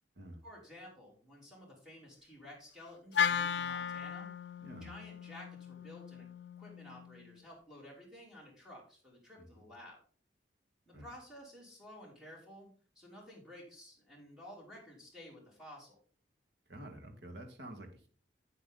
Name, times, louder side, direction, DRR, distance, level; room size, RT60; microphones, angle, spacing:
voice 1, 0.4-4.3 4.8-6.3 6.6-10.0 10.9-16.0, left 1 dB, 5° right, -3 dB, 3.5 m, -53 dB
Wind instrument woodwind instrument, 3.1-7.4, left 7 dB, 65° left, 0.4 m, -36 dB
voice 2, 9.4-9.7 10.9-11.1 16.7-18.1, right 1 dB, 65° right, 4 dB, 1.9 m, -49 dB
8.4 x 8.1 x 3.9 m, 0.43 s
head